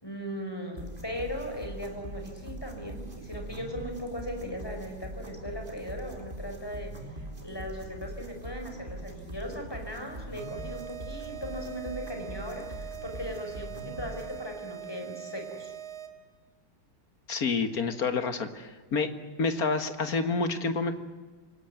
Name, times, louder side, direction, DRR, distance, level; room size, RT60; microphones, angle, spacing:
voice 1, 0.0-7.0 7.4-15.7, equal, 10° left, 4 dB, 5.0 m, -38 dB
sound 1, 0.8-14.4, right 1 dB, 25° right, 3.5 m, -42 dB
sound 2, 10.4-16.3, right 10 dB, 50° right, 2.4 m, -42 dB
voice 2, 17.3-19.1 19.4-21.0, left 4 dB, 50° left, 9 dB, 2.1 m, -28 dB
27.0 x 18.0 x 9.3 m, 1.4 s
omnidirectional pair, 2.2 m